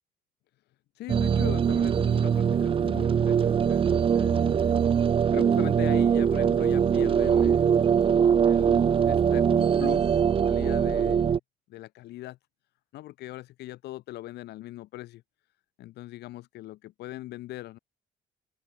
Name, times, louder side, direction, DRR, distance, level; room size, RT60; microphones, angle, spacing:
voice 1, 1.0-8.0 8.4-11.4 11.7-12.4 12.9-15.2 15.8-17.8, left 16 dB, 80° left, 5.3 m, -40 dB
sound 1, 1.1-11.4, right 7 dB, 30° right, 0.6 m, -22 dB
open air
cardioid pair, 110°, 17 cm